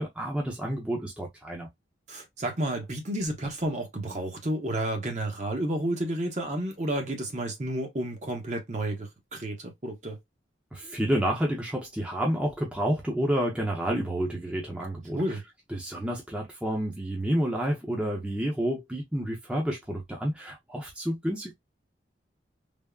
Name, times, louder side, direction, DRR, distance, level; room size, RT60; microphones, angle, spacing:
voice 1, 0.0-1.7 10.7-15.4 15.7-21.5, equal, 5° right, 0.6 m, -29 dB
voice 2, 2.1-10.2 15.1-15.4, right 1 dB, 40° right, 0.8 m, -31 dB
3.4 x 2.0 x 2.2 m
head